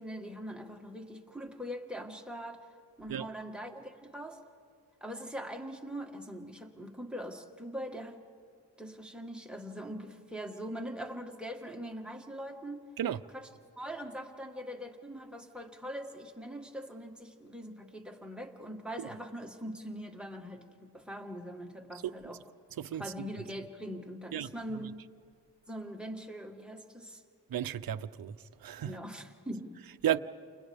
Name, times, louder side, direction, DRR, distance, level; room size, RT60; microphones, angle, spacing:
voice 1, 0.0-2.7 3.0-4.4 5.0-8.2 8.8-12.9 13.3-13.5 13.8-22.4 23.0-25.0 25.7-27.2 28.8-29.8, equal, ahead, 1.5 m, -42 dB
voice 2, 22.8-23.3 24.3-24.5 24.8-24.9 27.5-29.0 30.0-30.2, right 10 dB, 60° right, 0.6 m, -34 dB
29.5 x 29.0 x 3.5 m
wide cardioid pair, 135°, 41 cm